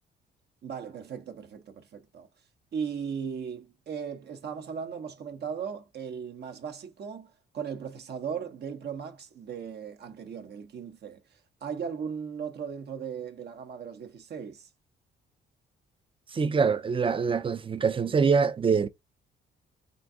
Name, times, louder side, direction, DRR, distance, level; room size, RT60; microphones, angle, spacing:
voice 1, 0.6-2.3 2.7-14.7, right 7 dB, 55° right, 0.8 m, -37 dB
voice 2, 16.3-18.9, right 5 dB, 25° right, 0.5 m, -24 dB
3.8 x 2.6 x 3.6 m
cardioid pair, 90°, 20 cm